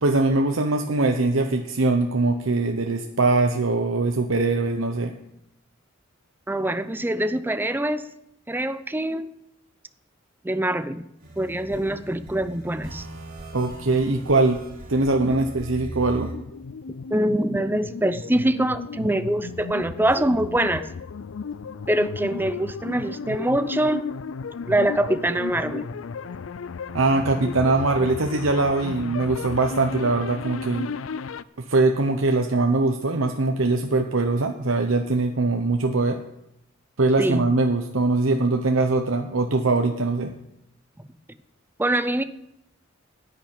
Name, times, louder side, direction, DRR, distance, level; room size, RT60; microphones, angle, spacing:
voice 1, 0.0-5.1 13.5-14.6 14.9-16.3 26.9-30.9 31.6-36.2 37.0-40.3, right 3 dB, 80° right, 4 dB, 1.0 m, -22 dB
voice 2, 6.5-8.0 8.5-9.3 10.4-11.1 11.4-13.1 15.2-15.5 17.1-20.9 21.9-24.1 24.7-25.9 37.2-37.5 41.8-42.2, right 1 dB, 10° right, 12 dB, 0.6 m, -24 dB
sound 1, 11.2-16.3, right 2 dB, 50° right, 3.8 m, -39 dB
sound 2, 16.3-31.4, left 5 dB, 85° left, 0.5 m, -34 dB
10.0 x 9.1 x 8.8 m, 0.82 s
head